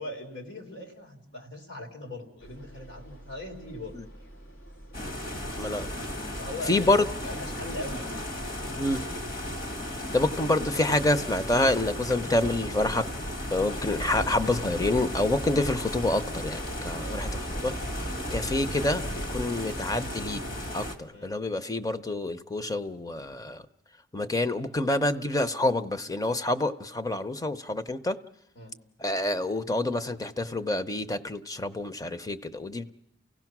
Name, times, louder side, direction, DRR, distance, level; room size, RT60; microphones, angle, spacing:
voice 1, 0.0-3.9 6.4-8.1 17.0-17.3 21.1-21.3 28.5-28.7, left 1 dB, 75° left, 2 dB, 3.2 m, -40 dB
sound 1, 2.4-19.5, right 1 dB, 90° left, 2.1 m, -42 dB
sound 2, 4.9-21.0, left 1 dB, 50° left, 1.8 m, -35 dB
voice 2, 6.7-7.0 8.8-9.0 10.1-13.0 13.5-17.3 17.6-17.7 18.3-20.4 20.7-23.6 24.1-28.2 29.0-32.9, left 2 dB, 20° left, 10 dB, 0.7 m, -27 dB
30.0 x 16.5 x 6.0 m, 0.82 s
head